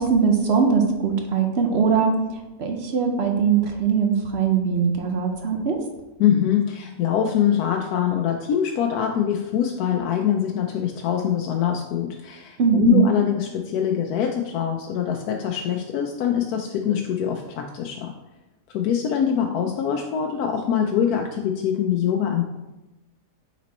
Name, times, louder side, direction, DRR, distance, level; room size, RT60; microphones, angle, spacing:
voice 1, 0.0-2.2 2.6-5.8 12.6-13.1, right 6 dB, 55° right, 3 dB, 0.8 m, -21 dB
voice 2, 6.2-18.1 18.7-22.4, left 9 dB, 90° left, 3 dB, 1.1 m, -23 dB
6.0 x 4.1 x 4.1 m, 1.0 s
omnidirectional pair, 1.6 m